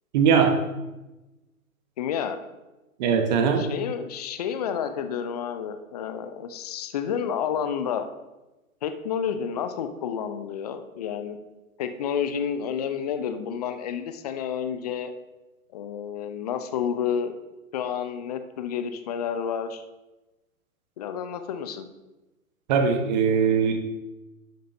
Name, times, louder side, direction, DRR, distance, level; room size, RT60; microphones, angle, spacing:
voice 1, 0.1-0.6 3.0-3.7 22.7-23.8, right 6 dB, 30° right, 6 dB, 1.2 m, -20 dB
voice 2, 2.0-2.4 3.6-8.1 8.8-11.4 11.8-15.1 15.7-17.4 17.7-19.8 21.0-21.9, left 8 dB, 25° left, 8 dB, 0.6 m, -30 dB
12.0 x 7.5 x 2.7 m, 1.0 s
figure-of-eight pair, 125°, 44 cm